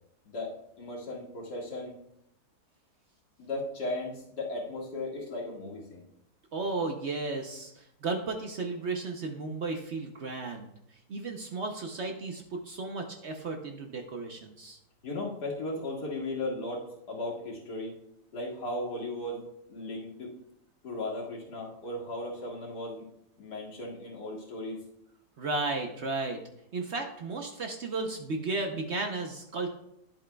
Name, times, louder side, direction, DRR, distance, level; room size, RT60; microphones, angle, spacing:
voice 1, 0.3-1.9 3.4-6.1 15.0-17.9 18.3-19.4 19.7-20.3 20.8-23.0 23.4-24.8, left 2 dB, 80° left, -4 dB, 2.5 m, -36 dB
voice 2, 6.5-14.8 25.4-26.4 26.7-29.7, right 3 dB, 55° right, 4 dB, 0.8 m, -34 dB
11.0 x 7.8 x 2.3 m, 0.79 s
omnidirectional pair, 1.7 m